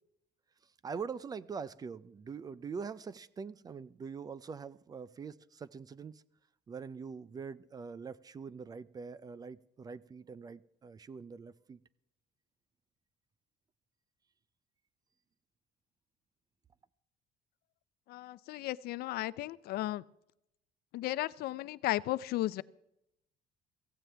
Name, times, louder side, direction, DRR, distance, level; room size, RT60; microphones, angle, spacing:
voice 1, 0.8-6.2 6.7-11.8, right 5 dB, 25° right, 0.4 m, -43 dB
voice 2, 18.1-20.0 20.9-22.6, left 16 dB, 65° left, 0.5 m, -35 dB
16.5 x 15.5 x 3.4 m
cardioid pair, 155°, 17 cm